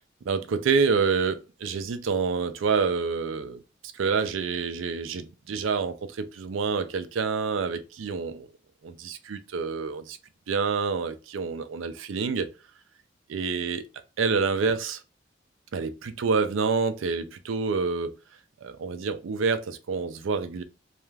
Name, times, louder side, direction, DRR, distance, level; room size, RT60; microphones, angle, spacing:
voice 1, 0.3-3.6 3.9-8.5 8.8-10.2 10.5-12.5 13.3-13.8 14.2-15.0 15.7-18.1 18.6-20.6, right 5 dB, 90° right, 0.4 m, -27 dB
2.4 x 2.2 x 3.1 m
head